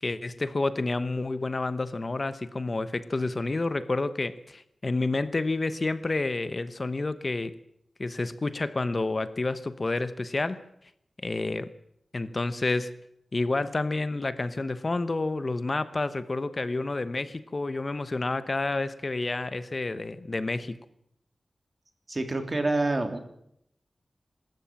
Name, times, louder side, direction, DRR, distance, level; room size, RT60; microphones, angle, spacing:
voice 1, 0.0-7.5 8.0-10.6 11.2-11.7 12.1-12.9 13.3-20.8, left 2 dB, 40° left, 13 dB, 1.0 m, -29 dB
voice 2, 22.1-23.2, right 2 dB, 35° right, 6 dB, 3.3 m, -27 dB
25.0 x 13.5 x 8.8 m, 0.76 s
wide cardioid pair, 90°, 0 cm